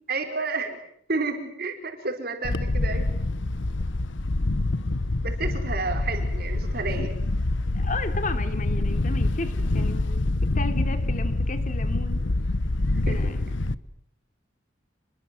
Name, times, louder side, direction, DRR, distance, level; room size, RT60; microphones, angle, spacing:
voice 1, 0.1-0.8 1.1-3.1 5.2-7.1 13.1-13.3, right 3 dB, 55° right, 5 dB, 4.9 m, -30 dB
Wind, 2.4-13.8, left 2 dB, 80° left, 1.0 m, -26 dB
voice 2, 7.7-12.2 13.0-13.5, left 2 dB, 45° left, 8 dB, 3.1 m, -34 dB
29.0 x 22.5 x 7.7 m, 0.71 s
head